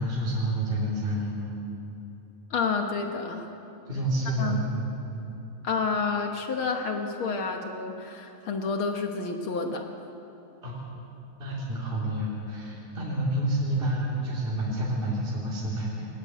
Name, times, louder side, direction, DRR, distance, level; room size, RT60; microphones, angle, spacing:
voice 1, 0.0-1.4 3.9-4.9 5.1-5.3 10.6-10.8 11.4-16.1, right 1 dB, 15° right, -7 dB, 3.5 m, -29 dB
voice 2, 2.5-3.5 4.4-4.6 5.6-9.8, left 4 dB, 65° left, 4 dB, 1.3 m, -29 dB
22.0 x 19.5 x 7.9 m, 2.9 s
omnidirectional pair, 4.0 m